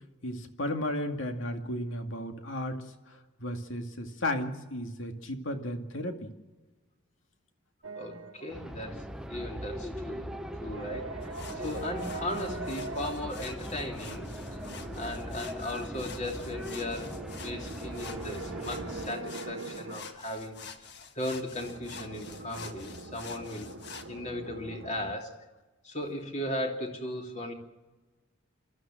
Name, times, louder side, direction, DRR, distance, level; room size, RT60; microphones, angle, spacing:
voice 1, 0.2-6.3 20.0-20.2, left 1 dB, 70° left, 5 dB, 2.2 m, -34 dB
sound 1, 7.8-8.7 10.5-13.2 14.0-15.4 16.0-20.1 21.5-25.1, right 3 dB, 80° right, 1.5 m, -42 dB
voice 2, 8.0-9.0 9.3-11.1 11.5-14.6 14.9-20.9 21.1-23.7 24.1-25.4 25.8-27.5, left 1 dB, 35° left, 2 dB, 3.0 m, -37 dB
sound 2, 8.5-19.1, equal, 5° right, 0.8 m, -40 dB
sound 3, 11.2-24.1, left 5 dB, 50° left, 1.6 m, -48 dB
27.5 x 13.0 x 7.6 m, 1.2 s
head